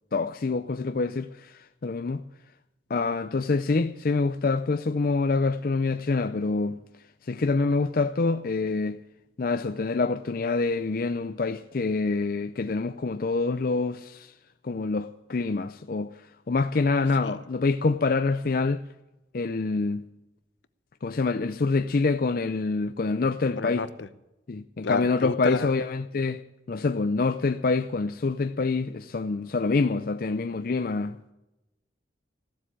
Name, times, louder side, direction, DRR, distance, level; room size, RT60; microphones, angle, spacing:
voice 1, 0.1-2.2 2.9-6.8 7.3-9.0 9.4-14.3 14.6-16.1 16.5-18.8 19.3-20.1 21.0-23.9 24.5-26.4 26.7-31.2, left 3 dB, 50° left, 0.5 m, -26 dB
voice 2, 23.5-24.1 24.8-25.7, left 3 dB, 70° left, 0.9 m, -30 dB
15.0 x 7.8 x 10.0 m
head